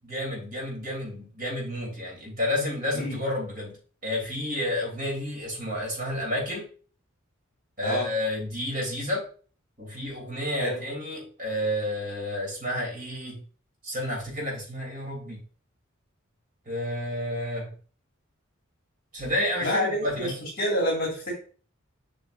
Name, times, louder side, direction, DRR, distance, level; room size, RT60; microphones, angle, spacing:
voice 1, 0.0-3.8 4.0-6.7 7.8-9.2 9.8-13.4 13.8-15.4 16.6-17.7 19.1-20.3, left 1 dB, 45° right, -1 dB, 3.4 m, -30 dB
voice 2, 19.6-21.3, left 1 dB, 45° left, -4 dB, 2.4 m, -27 dB
7.9 x 5.5 x 2.7 m, 0.39 s
head